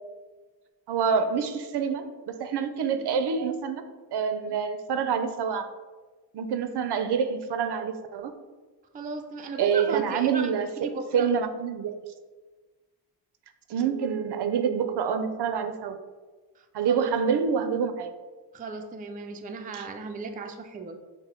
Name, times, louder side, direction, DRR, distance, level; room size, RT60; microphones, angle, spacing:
voice 1, 0.9-3.8 4.1-5.7 6.3-8.3 9.6-10.7 11.1-11.9 13.7-16.0 16.7-18.1 19.7-19.8, right 6 dB, 75° right, 8 dB, 0.5 m, -27 dB
voice 2, 8.9-10.5 10.8-11.3 16.6-17.1 18.5-21.0, right 4 dB, 25° right, 5 dB, 0.3 m, -36 dB
5.6 x 2.1 x 4.3 m, 1.3 s
wide cardioid pair, 125°, 41 cm